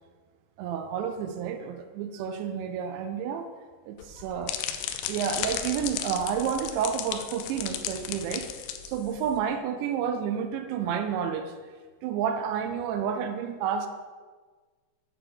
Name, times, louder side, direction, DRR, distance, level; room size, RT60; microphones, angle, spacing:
voice 1, 0.6-3.5 3.9-4.6 5.1-8.5 8.9-11.5 12.0-13.9, right 8 dB, 80° right, 7 dB, 2.8 m, -30 dB
sound 1, 4.0-9.4, left 10 dB, 85° left, 2.5 m, -35 dB
7.9 x 4.5 x 6.7 m, 1.4 s
omnidirectional pair, 5.4 m